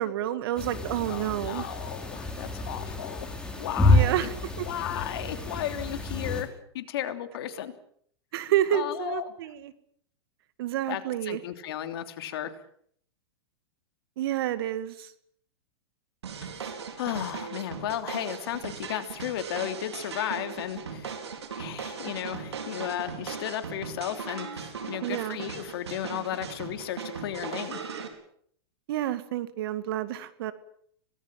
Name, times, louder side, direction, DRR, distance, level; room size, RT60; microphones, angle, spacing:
voice 1, 0.0-1.7 3.9-4.6 8.3-9.7 10.6-11.4 14.2-15.1 25.0-25.4 28.9-30.5, right 12 dB, 60° right, 13 dB, 2.2 m, -29 dB
sound 1, 0.6-6.4, left 2 dB, 5° left, 5.2 m, -28 dB
voice 2, 1.1-4.3 4.6-7.7 8.7-9.3 10.9-12.5 16.6-16.7 17.0-21.2 21.5-27.9, left 11 dB, 65° left, 8 dB, 3.2 m, -34 dB
sound 2, 16.2-28.1, right 6 dB, 85° right, 4.7 m, -38 dB
26.0 x 19.0 x 7.7 m, 0.65 s
hypercardioid pair, 115°, 14 cm